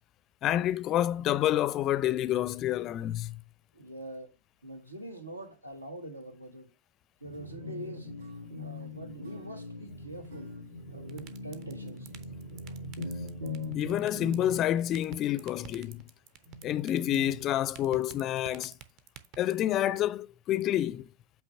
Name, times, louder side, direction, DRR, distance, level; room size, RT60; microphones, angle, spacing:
voice 1, 0.4-3.4 13.7-16.0 16.6-18.8 19.4-21.1, left 12 dB, 35° left, 0.4 m, -28 dB
voice 2, 3.7-4.4 4.6-6.7 7.2-8.1 8.6-10.5 10.9-12.1, right 1 dB, 85° right, 1.3 m, -44 dB
sound 1, 7.2-14.9 15.9-16.0 16.4-17.4, left 2 dB, 60° right, 1.9 m, -41 dB
sound 2, 11.1-19.6, right 10 dB, 40° right, 0.7 m, -47 dB
8.2 x 3.1 x 5.3 m
figure-of-eight pair, 90°, 0 cm